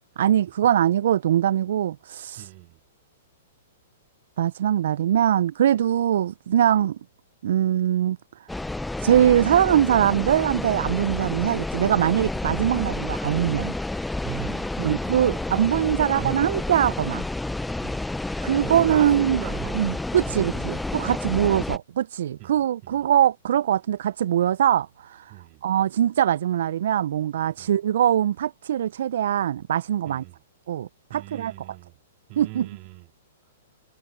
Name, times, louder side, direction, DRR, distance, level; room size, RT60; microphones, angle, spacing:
voice 1, 0.2-2.5 4.4-7.0 7.4-8.5 9.0-13.7 14.8-17.2 18.4-19.4 19.7-25.4 25.6-30.2 30.7-31.5 32.4-32.7, right 10 dB, 65° right, 0.5 m, -22 dB
voice 2, 2.4-2.8 14.2-15.5 16.1-16.5 17.8-18.0 18.6-21.6 22.4-23.1 25.3-25.6 27.6-27.7 30.1-30.4 31.1-32.0 32.3-33.1, right 30 dB, 40° right, 4.0 m, -40 dB
sound 1, 8.5-21.8, left 2 dB, 5° left, 0.7 m, -30 dB
hypercardioid pair, 115°, 0 cm